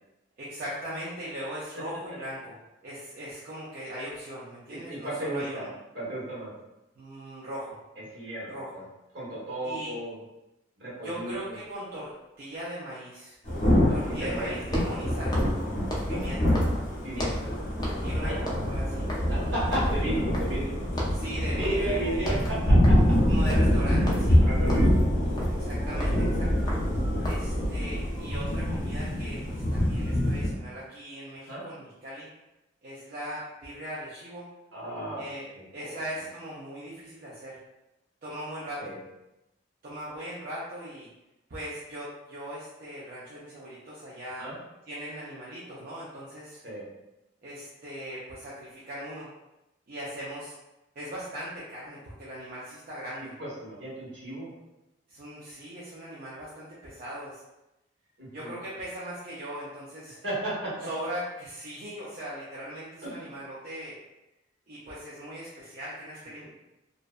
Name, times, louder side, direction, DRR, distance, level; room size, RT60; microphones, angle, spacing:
voice 1, 0.4-2.5 2.8-5.7 7.0-7.8 8.5-8.7 9.6-9.9 11.0-12.1 12.4-13.4 13.9-15.4 16.1-16.5 18.0-18.3 18.6-19.1 21.1-22.4 23.2-24.4 25.6-26.7 27.2-32.3 32.8-34.5 35.2-35.5 35.7-37.6 38.2-38.9 39.8-41.1 41.5-44.4 44.9-46.6 47.4-49.3 49.9-50.5 51.0-53.3 55.1-57.4 58.3-60.2 60.8-64.0 64.7-66.4, equal, 50° right, -8 dB, 0.5 m, -39 dB
voice 2, 4.7-5.7 5.9-6.5 8.1-8.8 9.1-10.2 10.8-11.5 13.7-14.6 16.9-17.5 18.2-18.4 19.3-20.8 21.6-23.1 24.4-24.9 31.4-31.6 34.7-35.2 35.5-36.0 38.8-39.0 44.4-44.6 46.6-46.8 53.4-54.5 58.2-58.5 60.2-60.7 63.0-63.2, right 1 dB, 70° right, -8 dB, 1.2 m, -34 dB
Thunder / Rain, 13.4-30.5, equal, 45° left, 0.8 m, -25 dB
sound 1, 14.6-17.5 17.8-18.1 18.4-20.7 21.0-21.3 21.6-21.9 22.2-27.6, equal, 20° left, 0.4 m, -35 dB
2.5 x 2.1 x 2.4 m, 0.95 s
head